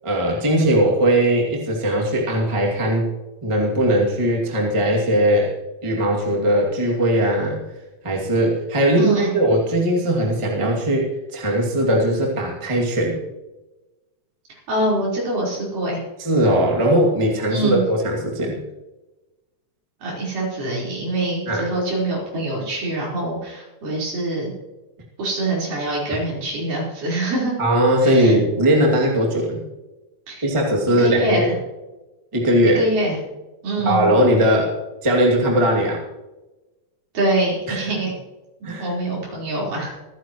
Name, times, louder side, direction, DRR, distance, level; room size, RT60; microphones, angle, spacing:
voice 1, 0.0-3.1 3.4-5.5 5.8-7.6 8.0-13.2 16.2-18.6 21.5-21.7 27.6-29.6 30.4-31.5 32.3-32.8 33.8-34.8 35.0-36.0 37.7-37.8 38.6-38.9, right 1 dB, 10° right, -1 dB, 1.9 m, -19 dB
voice 2, 9.0-9.3 14.7-16.0 17.5-17.8 20.0-24.5 25.2-27.5 28.0-28.4 30.3-30.5 31.0-31.5 32.8-33.2 33.6-34.1 37.1-38.1 38.6-39.9, right 2 dB, 65° right, -4 dB, 6.1 m, -24 dB
25.5 x 10.5 x 3.1 m, 1.1 s
omnidirectional pair, 4.2 m